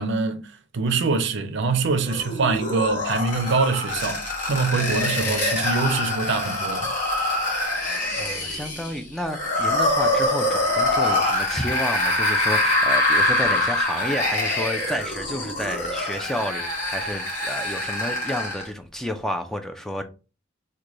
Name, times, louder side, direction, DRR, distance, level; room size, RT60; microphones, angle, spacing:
voice 1, 0.0-4.2 4.5-6.9, right 4 dB, 65° right, 0.5 m, -24 dB
sound 1, 2.1-18.7, left 1 dB, 45° left, 1.2 m, -24 dB
voice 2, 8.1-20.0, equal, ahead, 0.3 m, -30 dB
3.1 x 2.2 x 3.7 m
head